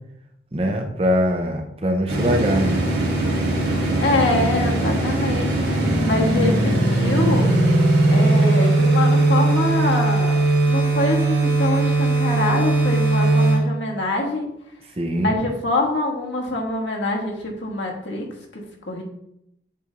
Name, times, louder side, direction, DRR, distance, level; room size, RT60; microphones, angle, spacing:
voice 1, 0.5-2.8 15.0-15.3, equal, 30° right, 4 dB, 0.7 m, -22 dB
sound 1, 2.1-13.6, right 2 dB, 65° right, 2.2 m, -19 dB
voice 2, 4.0-5.6 6.0-7.5 8.1-14.5 15.2-18.3 18.5-19.0, left 2 dB, 80° left, 0 dB, 1.4 m, -24 dB
8.3 x 3.3 x 3.8 m, 0.79 s
head